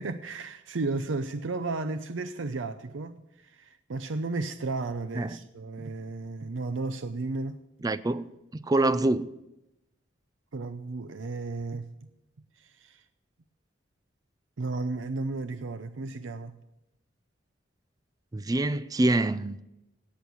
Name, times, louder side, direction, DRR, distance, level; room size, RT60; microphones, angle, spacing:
voice 1, 0.0-7.6 10.5-11.9 12.6-13.0 14.6-16.6, right 3 dB, 85° right, 0.6 m, -34 dB
voice 2, 7.8-9.3 18.3-19.6, right 2 dB, 20° right, 0.4 m, -26 dB
17.0 x 6.4 x 7.1 m
head